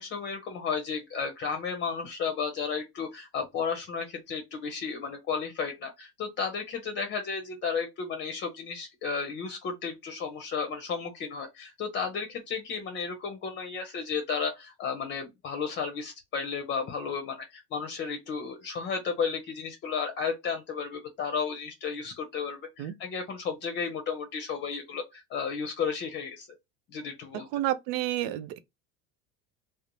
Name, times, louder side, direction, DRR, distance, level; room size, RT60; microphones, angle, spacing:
voice 1, 0.0-26.5 26.9-27.5, left 5 dB, 40° left, 0.6 m, -33 dB
voice 2, 27.5-28.6, right 14 dB, 75° right, 0.5 m, -30 dB
2.5 x 2.0 x 3.0 m
supercardioid pair, 125°, 29 cm